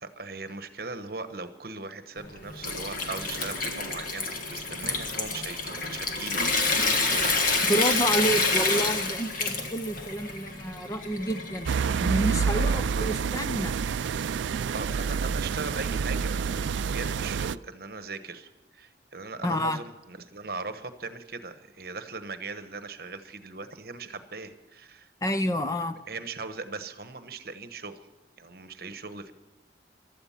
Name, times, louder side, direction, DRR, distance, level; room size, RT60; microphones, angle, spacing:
voice 1, 0.0-7.7 8.3-8.5 12.5-13.1 14.7-25.1 25.7-25.8 26.1-28.0 28.4-29.3, right 3 dB, 55° right, 10 dB, 1.1 m, -39 dB
Water tap faucet / Sink (filling or washing) / Trickle dribble, 2.2-12.1, left 3 dB, 50° left, 1.6 m, -28 dB
voice 2, 7.7-13.7 19.4-19.8 25.2-26.0, equal, 20° left, 9 dB, 0.6 m, -29 dB
sound 1, 11.7-17.6, right 6 dB, 85° right, 0.4 m, -28 dB
15.5 x 12.5 x 5.8 m, 1.1 s
head